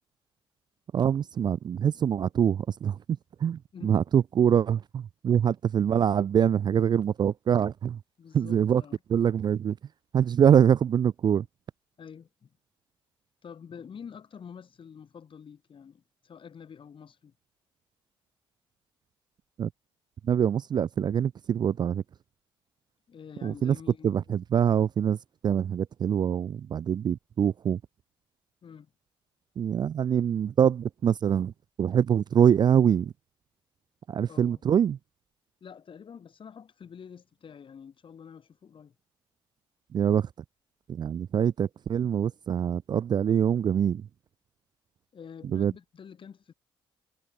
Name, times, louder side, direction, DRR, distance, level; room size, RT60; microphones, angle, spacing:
voice 1, 0.9-3.0 3.4-8.0 8.3-8.8 9.1-9.8 10.1-11.5 19.6-19.7 20.2-22.0 23.4-23.8 24.0-25.2 25.4-27.8 29.6-31.5 31.8-33.1 34.1-35.0 39.9-40.3 40.9-44.1 45.5-45.7, right 8 dB, 40° right, 0.4 m, -24 dB
voice 2, 8.2-9.0 12.0-12.5 13.4-17.3 23.1-24.2 28.6-28.9 34.3-34.6 35.6-38.9 45.1-46.5, left 7 dB, 45° left, 7.4 m, -47 dB
figure-of-eight pair, 45°, 12 cm